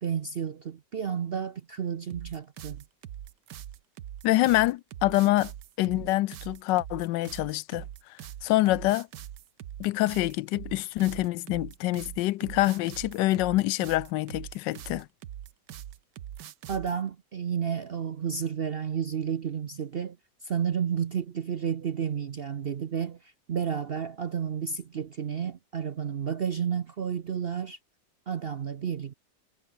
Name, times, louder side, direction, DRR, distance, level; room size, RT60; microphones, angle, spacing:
voice 1, 0.0-2.8 16.7-20.2 20.4-27.8 28.3-29.1, right 7 dB, 55° right, 0.6 m, -31 dB
sound 1, 2.1-17.0, right 11 dB, 80° right, 1.6 m, -42 dB
voice 2, 4.2-5.5 5.8-7.8 8.4-9.1 9.8-15.1, left 17 dB, 90° left, 1.2 m, -26 dB
omnidirectional pair, 1.9 m